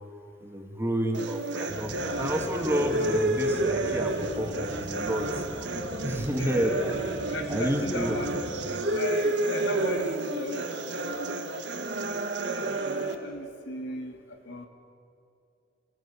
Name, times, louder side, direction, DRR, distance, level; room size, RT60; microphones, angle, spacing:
voice 1, 0.4-7.0 7.5-8.2, equal, 15° right, 2 dB, 2.2 m, -30 dB
sound 1, 1.1-13.2, right 2 dB, 60° right, 1.8 m, -30 dB
sound 2, 1.7-8.7, right 1 dB, 30° right, 1.4 m, -41 dB
voice 2, 6.1-6.7 7.3-8.3 8.9-11.8 13.2-14.7, left 1 dB, 75° left, 5 dB, 2.3 m, -37 dB
27.5 x 17.5 x 8.5 m, 2.5 s
head